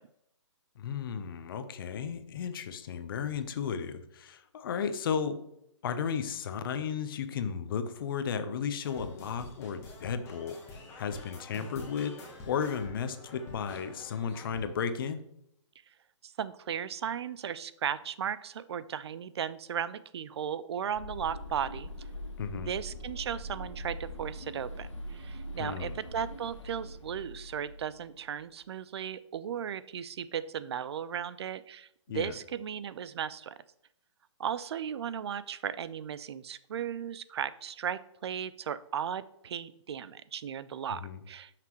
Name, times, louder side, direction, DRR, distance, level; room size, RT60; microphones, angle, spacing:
voice 1, 0.8-5.4 5.8-10.7 11.0-15.2 22.4-22.7 25.6-26.0 32.1-32.3 40.9-41.2, left 7 dB, 45° left, 10 dB, 0.7 m, -34 dB
sound 1, 8.8-14.7, left 3 dB, 15° left, 1.5 m, -47 dB
voice 2, 16.2-22.1 22.5-33.6 34.4-41.0 41.3-41.5, right 8 dB, 55° right, 16 dB, 0.4 m, -36 dB
sound 2, 21.0-28.4, equal, 70° left, 1.4 m, -42 dB
11.0 x 5.9 x 3.0 m, 0.79 s
hypercardioid pair, 155°, 16 cm